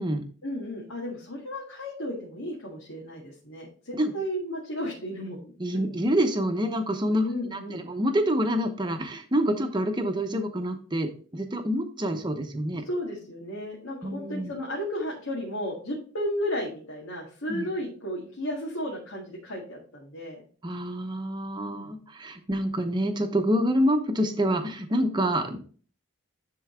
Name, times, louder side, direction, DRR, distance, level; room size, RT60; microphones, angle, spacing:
voice 1, 0.4-5.9 7.2-7.9 12.8-20.4 21.7-22.0, equal, 80° left, -3 dB, 1.8 m, -34 dB
voice 2, 5.6-7.3 7.5-12.8 14.0-14.5 17.5-17.7 20.6-25.6, equal, 20° right, 6 dB, 0.9 m, -27 dB
10.0 x 3.9 x 3.7 m, 0.42 s
head